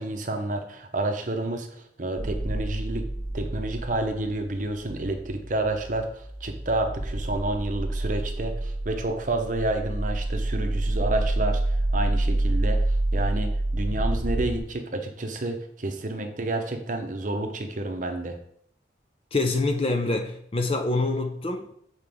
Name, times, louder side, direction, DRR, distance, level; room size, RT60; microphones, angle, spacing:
voice 1, 0.0-3.0 3.3-18.4, right 2 dB, 40° right, 0.8 m, -30 dB
sound 1, 2.2-14.6, right 1 dB, 10° right, 0.6 m, -28 dB
voice 2, 19.3-21.7, left 2 dB, 30° left, 0.5 m, -26 dB
7.7 x 4.8 x 3.5 m
head